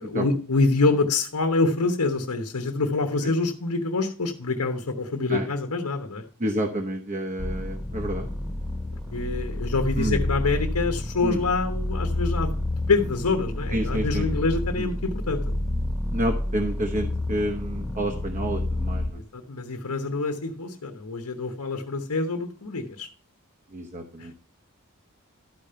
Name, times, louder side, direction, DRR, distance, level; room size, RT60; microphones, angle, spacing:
voice 1, 0.0-6.2 9.1-12.5 12.9-15.4 19.3-23.1 24.2-24.3, left 3 dB, 90° left, 5 dB, 1.0 m, -26 dB
voice 2, 6.4-8.3 10.0-10.2 11.2-11.4 13.7-14.2 14.8-14.9 16.1-19.2 23.7-24.3, right 1 dB, 35° right, 3 dB, 1.0 m, -29 dB
sound 1, 7.4-19.1, left 1 dB, 5° right, 1.3 m, -29 dB
12.0 x 5.1 x 5.6 m, 0.41 s
head